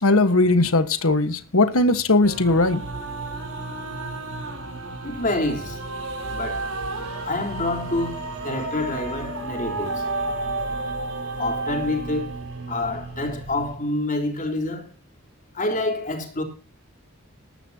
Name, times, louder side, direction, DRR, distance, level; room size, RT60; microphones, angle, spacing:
voice 1, 0.0-2.8, left 2 dB, 75° left, 1.5 m, -19 dB
sound 1, 2.2-13.8, right 2 dB, 80° right, 4.9 m, -32 dB
voice 2, 5.0-5.8 6.3-6.7 7.2-10.1 11.4-12.4 12.7-14.9 15.5-16.4, left 2 dB, 40° left, 3.6 m, -27 dB
20.0 x 11.0 x 2.9 m
head